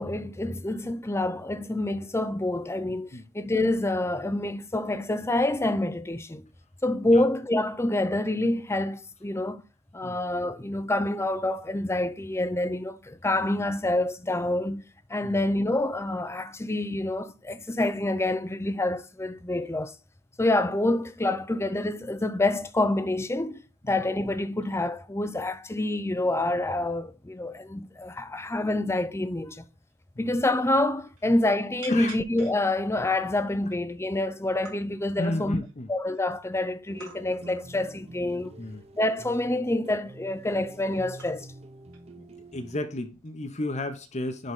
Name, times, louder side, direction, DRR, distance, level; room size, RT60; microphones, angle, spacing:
voice 1, 0.0-6.5 6.8-9.6 9.9-20.0 20.4-29.6 30.2-35.6 35.9-38.5 38.9-41.5, left 2 dB, 10° left, 0.6 m, -27 dB
voice 2, 2.9-3.3 7.1-7.2 10.0-10.2 15.2-15.4 16.6-16.7 23.8-23.9 30.1-30.3 31.9-32.1 35.2-35.9 38.6-38.8 42.2-42.3 42.5-44.5, left 1 dB, 30° left, 1.0 m, -33 dB
sound 1, 29.9-30.0 30.3-30.4 30.7-31.3 31.8-32.6 33.2-33.3 33.6-34.2 34.5-34.8 35.4-36.2 37.0-37.7 39.3-39.7 40.6-40.8 41.2-41.7 41.9-42.1 43.2-43.5, right 4 dB, 70° right, 3.1 m, -48 dB
sound 2, 36.9-42.8, right 2 dB, 30° right, 0.7 m, -47 dB
10.5 x 4.1 x 3.7 m
head